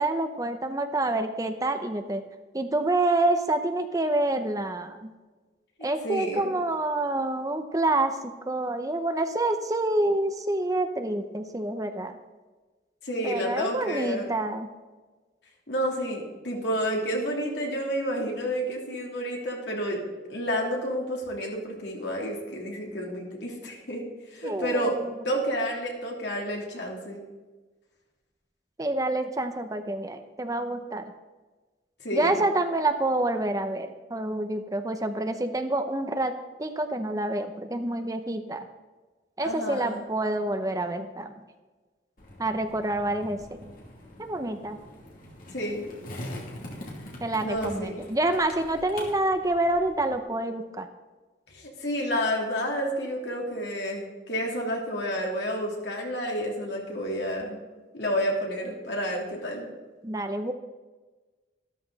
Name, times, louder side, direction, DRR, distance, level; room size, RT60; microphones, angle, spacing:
voice 1, 0.0-2.2 2.5-5.1 5.8-12.1 13.2-14.7 24.4-25.0 28.8-31.1 32.1-36.3 36.6-38.7 39.4-41.3 42.4-43.7 44.2-44.8 47.2-50.9 60.0-60.5, right 2 dB, 20° right, 8 dB, 0.7 m, -27 dB
voice 2, 5.8-6.5 13.0-14.4 15.7-20.0 20.3-24.0 24.3-25.0 25.2-27.2 32.0-32.4 39.4-40.0 45.5-45.9 47.4-48.0 51.5-57.6 57.9-59.7, equal, 70° left, -1 dB, 3.2 m, -30 dB
Skateboard, 42.2-50.2, left 1 dB, 50° left, 2.7 m, -43 dB
13.0 x 13.0 x 4.1 m, 1.3 s
head